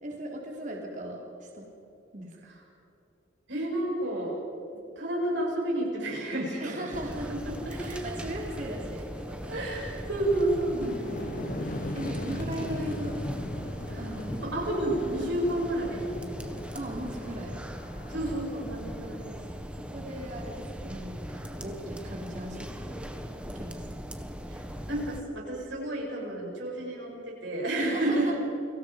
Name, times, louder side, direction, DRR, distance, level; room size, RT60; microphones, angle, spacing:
voice 1, 0.0-1.7 2.1-2.4 6.6-7.3 7.7-9.6 10.7-11.2 11.9-13.3 14.0-14.4 16.7-17.6 19.8-23.1 23.4-23.8 27.8-28.3, right 1 dB, 40° right, -1 dB, 3.6 m, -38 dB
voice 2, 3.5-4.4 5.0-7.9 9.5-12.4 13.9-14.1 14.4-16.6 18.1-19.4 24.5-28.3, right 1 dB, 75° right, -3 dB, 7.8 m, -31 dB
sound 1, 6.9-25.2, equal, 5° right, 1.4 m, -39 dB
sound 2, 8.3-8.4 8.7-19.5, left 1 dB, 45° left, 1.4 m, -40 dB
30.0 x 24.5 x 5.3 m, 2.8 s
head